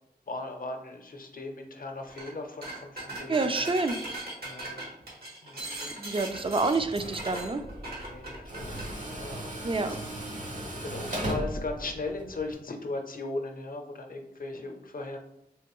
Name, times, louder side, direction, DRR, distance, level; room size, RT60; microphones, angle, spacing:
voice 1, 0.3-3.7 4.4-4.8 5.4-6.2 7.9-10.0 10.8-15.2, left 2 dB, 60° left, 3 dB, 0.6 m, -38 dB
sound 1, 2.1-2.3 2.6-8.9, right 1 dB, 70° right, 1.3 m, -39 dB
voice 2, 3.3-4.0 6.0-7.6 9.6-10.0, right 3 dB, 35° right, 9 dB, 0.4 m, -28 dB
Tools, 6.3-12.5, right 1 dB, 50° right, 1.0 m, -37 dB
3.4 x 3.0 x 3.0 m, 0.83 s
cardioid pair, 40°, 16 cm